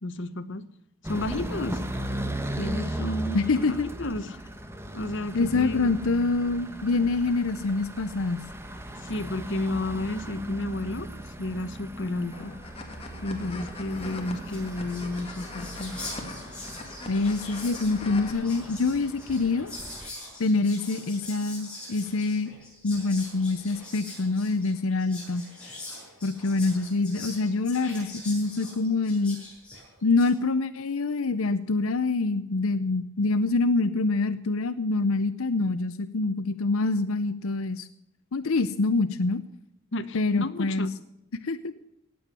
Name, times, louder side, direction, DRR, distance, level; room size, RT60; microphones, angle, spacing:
voice 1, 0.0-0.6 1.0-1.8 2.6-4.4 4.9-6.0 8.9-12.5 13.2-15.9 39.9-40.9, left 1 dB, 60° left, 10 dB, 1.0 m, -32 dB
sound 1, 1.0-20.1, right 1 dB, 10° right, 1.1 m, -37 dB
voice 2, 3.3-3.9 5.3-8.4 17.1-19.7 20.4-22.5 22.8-25.4 26.2-29.4 30.0-37.9 38.3-39.4 40.1-40.9 41.4-41.7, left 3 dB, 85° left, 12 dB, 0.7 m, -25 dB
sound 2, 12.3-18.3, left 2 dB, 30° left, 2.0 m, -42 dB
Whispering, 14.1-14.2 14.4-30.3, left 2 dB, 5° left, 7.5 m, -43 dB
18.0 x 7.9 x 6.8 m, 0.82 s
head